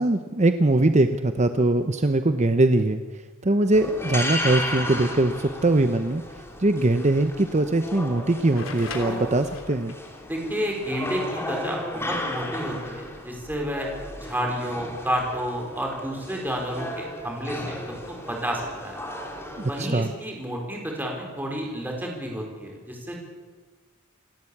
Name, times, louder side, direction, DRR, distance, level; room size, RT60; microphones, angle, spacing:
voice 1, 0.0-3.0 3.4-6.2 6.6-9.9 19.5-20.1, right 2 dB, 35° right, 8 dB, 0.9 m, -21 dB
sound 1, 3.7-19.8, left 1 dB, 15° left, 3.1 m, -34 dB
sound 2, 8.5-10.1 12.0-12.1 13.3-13.6, left 5 dB, 70° left, 3.2 m, -40 dB
voice 2, 10.2-13.9 14.1-17.7 18.1-19.0 19.7-23.2, equal, 10° right, 0 dB, 4.7 m, -30 dB
28.5 x 12.5 x 8.6 m, 1.4 s
head